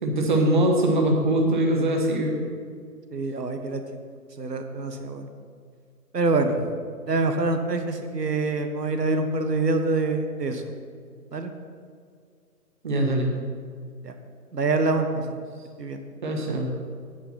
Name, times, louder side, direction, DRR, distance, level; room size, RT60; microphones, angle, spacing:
voice 1, 0.0-2.5 12.8-13.3 16.2-16.7, right 1 dB, 30° right, 1 dB, 1.4 m, -22 dB
voice 2, 3.1-3.8 4.4-5.3 6.1-6.7 7.1-10.6 11.3-11.5 14.0-14.1 14.5-15.4 15.8-16.0, right 3 dB, 90° right, 6 dB, 1.5 m, -25 dB
9.4 x 8.3 x 5.8 m, 2.1 s
hypercardioid pair, 165°, 47 cm